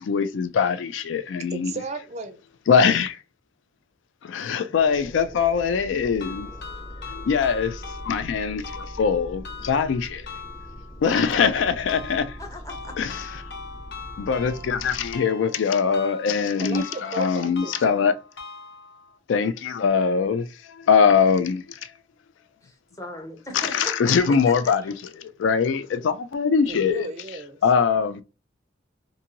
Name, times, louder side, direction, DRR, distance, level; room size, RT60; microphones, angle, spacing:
voice 1, 0.0-1.7 2.7-3.2 4.2-6.5 7.1-10.2 11.0-12.4 13.0-13.1 14.2-18.1 19.3-21.9 23.5-24.9 25.4-27.1 27.6-28.2, left 6 dB, 90° left, 0.3 m, -22 dB
voice 2, 1.5-2.4 16.6-18.0 26.7-27.6, right 3 dB, 35° right, 0.4 m, -34 dB
sound 1, 4.7-15.2, equal, 30° left, 1.0 m, -41 dB
sound 2, 6.2-19.2, left 4 dB, 60° left, 0.8 m, -42 dB
voice 3, 12.4-13.2 22.6-24.9, left 1 dB, 15° left, 0.6 m, -39 dB
2.6 x 2.6 x 2.8 m
head